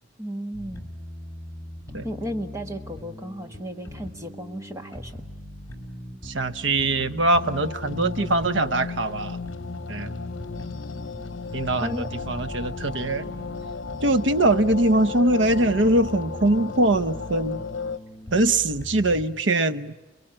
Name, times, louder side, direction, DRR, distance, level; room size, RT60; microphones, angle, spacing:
voice 1, 0.2-0.9 2.0-5.2 11.8-12.1, equal, 15° right, 6 dB, 1.5 m, -34 dB
sound 1, 0.5-19.2, left 1 dB, 15° left, 4.2 m, -40 dB
voice 2, 6.2-9.4 9.9-10.1 11.5-13.3 14.0-17.6 18.3-19.9, right 2 dB, 65° right, 12 dB, 0.9 m, -22 dB
sound 2, 7.3-18.0, left 5 dB, 80° left, 0.9 m, -35 dB
29.5 x 22.0 x 8.8 m, 1.1 s
head